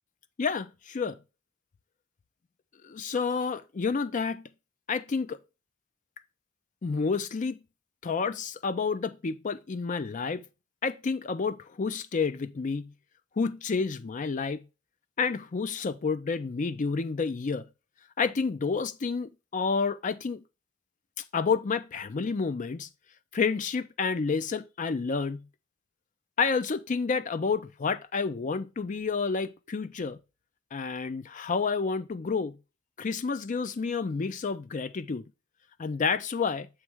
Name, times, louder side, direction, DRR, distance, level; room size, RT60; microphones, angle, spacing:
voice 1, 0.4-1.2 2.8-4.5 4.9-5.4 6.8-7.6 8.0-10.4 10.8-12.9 13.4-14.6 15.2-17.7 18.2-20.4 21.2-22.9 23.3-25.5 26.4-30.2 30.7-32.6 33.0-35.2 35.8-36.7, left 5 dB, 40° left, 0.4 m, -29 dB
7.1 x 3.2 x 4.6 m
head